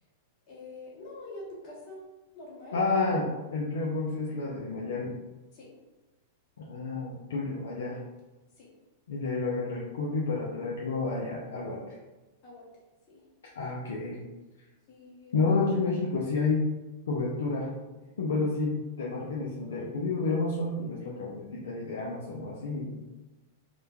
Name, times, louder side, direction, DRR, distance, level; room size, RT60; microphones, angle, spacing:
voice 1, 0.5-2.0 2.3-2.8 5.5-5.7 8.6-8.7 12.4-12.6 13.1-13.2 14.9-15.4, left 2 dB, 50° left, -6 dB, 1.2 m, -45 dB
voice 2, 2.7-5.1 6.6-8.0 9.1-12.0 13.6-14.2 15.3-16.6 17.1-17.7 18.2-23.0, left 3 dB, 80° left, -4 dB, 0.4 m, -30 dB
3.0 x 2.1 x 2.2 m, 1.1 s
hypercardioid pair, 110°, 0 cm